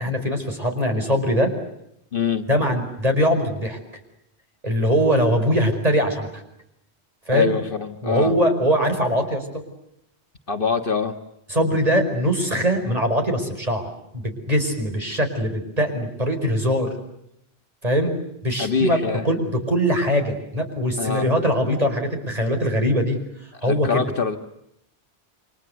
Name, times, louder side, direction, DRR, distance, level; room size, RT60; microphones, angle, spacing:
voice 1, 0.0-1.5 2.5-3.8 4.6-6.4 7.3-7.5 8.0-9.4 11.5-16.9 17.8-18.1 18.4-19.0 19.2-23.2 23.6-23.9, equal, 35° right, 4 dB, 5.3 m, -22 dB
voice 2, 2.1-2.5 7.3-8.3 10.5-11.1 18.6-19.3 21.0-21.3 23.5-24.4, left 5 dB, 55° left, 6 dB, 1.7 m, -24 dB
29.0 x 25.5 x 8.0 m, 0.79 s
omnidirectional pair, 1.1 m